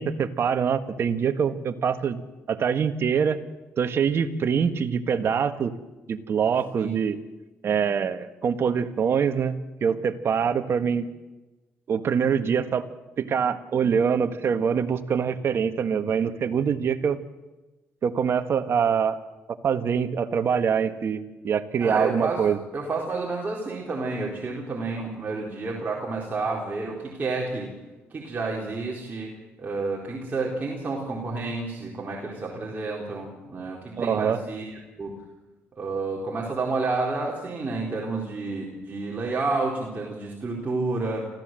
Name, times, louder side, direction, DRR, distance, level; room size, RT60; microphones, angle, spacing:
voice 1, 0.0-2.2 2.5-3.4 3.8-5.7 6.1-7.2 7.6-9.5 9.8-11.1 11.9-12.8 13.2-17.2 18.0-19.2 19.6-22.6 34.0-34.4, right 7 dB, 55° right, 8 dB, 1.5 m, -24 dB
voice 2, 21.8-22.4 22.7-27.7 28.1-29.3 29.6-34.7 35.0-35.1 35.8-41.3, right 3 dB, 35° right, -2 dB, 4.2 m, -30 dB
25.5 x 15.0 x 7.8 m, 1.1 s
cardioid pair, 80°, 5 cm